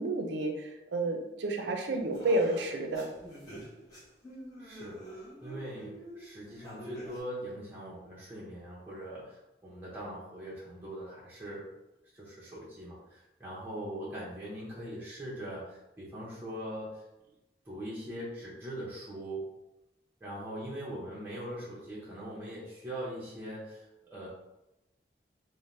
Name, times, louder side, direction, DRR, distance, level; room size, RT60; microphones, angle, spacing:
voice 1, 0.0-3.1, right 2 dB, 85° right, 4 dB, 0.4 m, -30 dB
sound 1, 1.8-7.2, right 1 dB, 20° left, 0.7 m, -47 dB
voice 2, 4.6-11.7 12.1-17.0 17.7-19.5 20.2-23.8 24.1-24.3, right 1 dB, 10° right, -7 dB, 0.6 m, -41 dB
2.6 x 2.0 x 3.2 m, 0.92 s
head